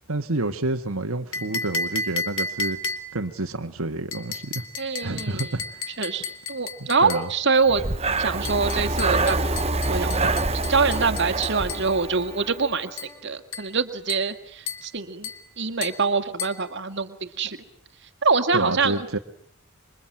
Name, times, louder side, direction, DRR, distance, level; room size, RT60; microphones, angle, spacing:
voice 1, 0.1-2.8 3.1-4.6 5.0-5.8 6.8-7.3 18.5-19.2, right 2 dB, 85° right, 6 dB, 1.6 m, -29 dB
sound 1, 1.3-3.3 4.1-7.3 8.4-11.9 13.0-13.2 13.5-13.8 14.1-14.4 14.7-14.9 15.2-15.5 15.8-16.1 16.4-16.6, left 3 dB, 70° left, 2.5 m, -33 dB
voice 2, 4.8-5.5 6.0-7.8 8.2-9.5 9.9-12.9 13.2-15.3 15.6-17.6 18.2-19.1, right 4 dB, 55° right, 9 dB, 2.0 m, -25 dB
Breathing, 7.7-12.6, right 3 dB, 30° right, 1.2 m, -26 dB
sound 2, 8.0-13.4, left 2 dB, 5° left, 5.1 m, -45 dB
27.0 x 24.5 x 8.9 m, 0.65 s
head